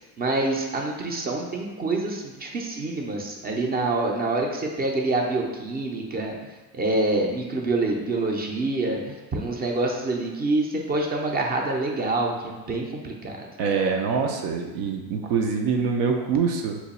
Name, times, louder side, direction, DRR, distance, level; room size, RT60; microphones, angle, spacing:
voice 1, 0.2-6.3 6.7-13.5, right 2 dB, 25° right, 1 dB, 0.4 m, -26 dB
voice 2, 13.6-16.8, right 5 dB, 85° right, 3 dB, 0.5 m, -24 dB
2.9 x 2.2 x 4.1 m, 1.1 s
cardioid pair, 110°, 42 cm